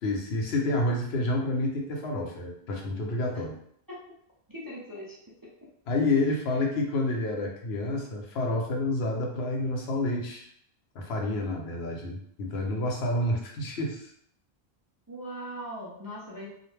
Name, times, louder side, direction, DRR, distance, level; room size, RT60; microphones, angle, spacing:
voice 1, 0.0-3.5 5.9-10.5 10.9-14.1, left 2 dB, 80° left, 1 dB, 0.9 m, -29 dB
voice 2, 4.5-5.2 15.1-16.5, equal, 30° right, -6 dB, 0.4 m, -39 dB
2.4 x 2.1 x 3.2 m, 0.69 s
omnidirectional pair, 1.0 m